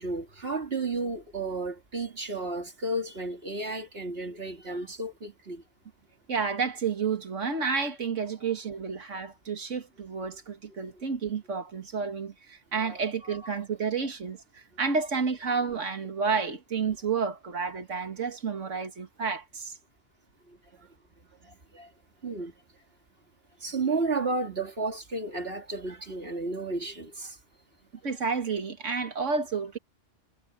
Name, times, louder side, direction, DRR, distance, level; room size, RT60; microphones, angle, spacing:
voice 1, 0.0-5.6 12.8-13.4 21.4-21.9 22.2-22.5 23.6-27.4, right 3 dB, 55° right, 2.9 m, -33 dB
voice 2, 6.3-19.7 28.0-29.8, right 5 dB, 85° right, 2.2 m, -30 dB
omnidirectional pair, 1.2 m